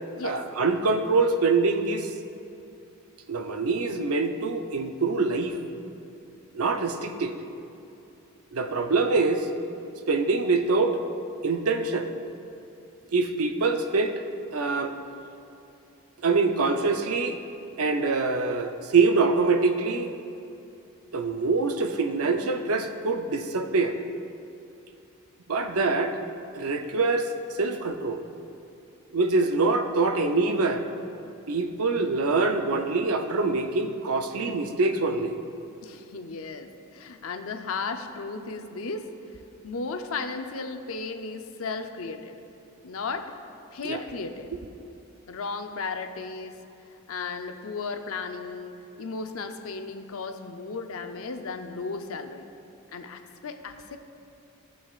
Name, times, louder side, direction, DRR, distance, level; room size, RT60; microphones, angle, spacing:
voice 1, 0.2-2.1 3.3-5.6 6.5-7.3 8.5-9.5 10.1-11.0 11.4-12.1 13.1-14.2 14.5-14.9 16.2-17.4 17.8-20.1 21.1-24.0 25.5-26.2 26.5-27.3 27.6-28.2 29.1-30.8 31.5-35.4 43.8-44.0 44.5-44.6, right 3 dB, 70° right, 6 dB, 0.6 m, -24 dB
voice 2, 35.8-39.1 39.6-42.4 42.8-43.3 43.7-44.5 45.3-46.6 46.9-52.5 52.9-54.0, left 4 dB, 65° left, 7 dB, 0.5 m, -35 dB
15.5 x 7.0 x 2.4 m, 2.7 s
head